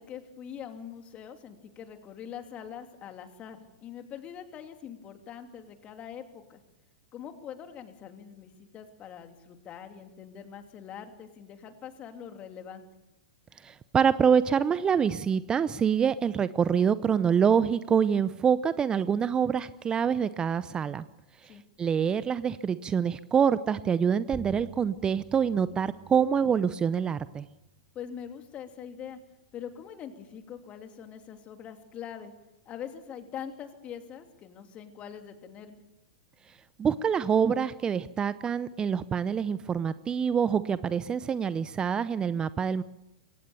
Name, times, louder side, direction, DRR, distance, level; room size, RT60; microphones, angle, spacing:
voice 1, 0.0-6.6 7.1-12.9 21.5-21.6 27.9-29.2 29.5-32.3 32.7-35.8, left 8 dB, 30° left, 6 dB, 2.9 m, -43 dB
voice 2, 13.6-21.0 21.4-27.5 36.8-42.8, right 7 dB, 20° right, 15 dB, 0.7 m, -26 dB
sound 1, 24.3-29.4, right 3 dB, ahead, 2.0 m, -50 dB
23.5 x 18.5 x 7.0 m, 0.91 s
hypercardioid pair, 105°, 4 cm